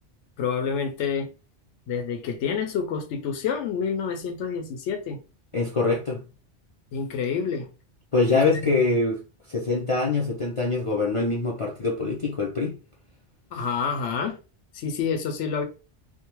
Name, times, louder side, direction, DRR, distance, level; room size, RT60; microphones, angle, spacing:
voice 1, 0.4-1.3 1.9-5.2 6.9-7.7 8.3-8.7 13.5-14.4 14.7-15.6, left 6 dB, 85° left, 0.9 m, -28 dB
voice 2, 5.5-6.2 8.1-12.8, left 3 dB, 55° left, 0.3 m, -24 dB
2.6 x 2.1 x 2.9 m
omnidirectional pair, 1.2 m